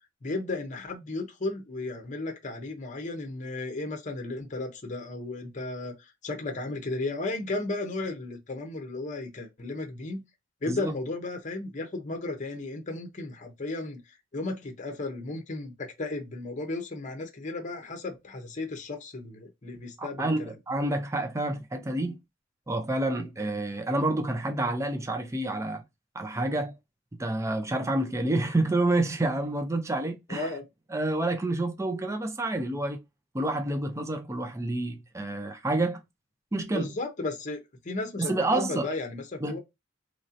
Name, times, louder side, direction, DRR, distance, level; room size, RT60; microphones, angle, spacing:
voice 1, 0.2-10.2 10.6-14.0 14.3-20.5 30.3-30.6 36.7-37.6 37.8-39.6, left 2 dB, 40° left, 0.7 m, -34 dB
voice 2, 20.0-22.2 22.7-25.8 26.1-26.7 27.2-30.5 30.9-33.0 33.3-36.0 36.5-36.9 38.2-38.9 39.4-39.6, right 2 dB, 15° right, 0.4 m, -28 dB
3.1 x 2.7 x 2.5 m
head